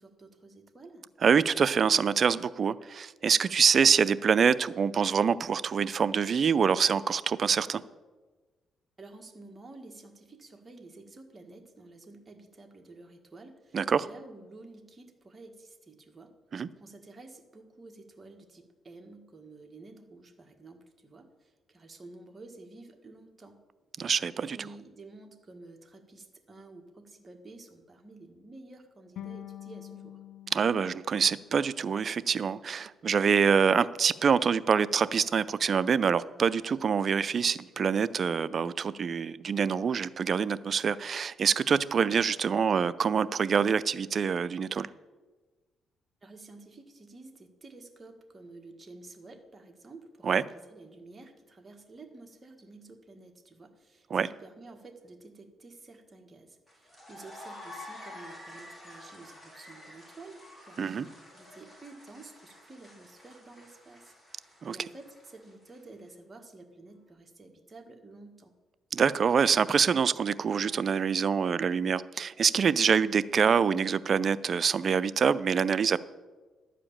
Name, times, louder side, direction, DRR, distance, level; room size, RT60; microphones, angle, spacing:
voice 1, 0.0-1.1 9.0-16.3 16.8-23.6 24.3-30.2 46.2-68.5, right 2 dB, 25° right, 3 dB, 1.7 m, -51 dB
voice 2, 1.2-7.8 13.7-14.1 16.5-16.7 24.0-24.6 30.5-44.9 50.2-50.4 54.1-54.3 60.8-61.1 64.6-64.8 68.9-76.0, right 6 dB, 50° right, 16 dB, 0.4 m, -25 dB
sound 1, 29.2-32.3, left 12 dB, 80° left, 0.8 m, -47 dB
sound 2, 56.7-66.0, left 1 dB, 15° left, 4.0 m, -49 dB
12.0 x 5.1 x 8.7 m, 1.3 s
cardioid pair, 90°, 0 cm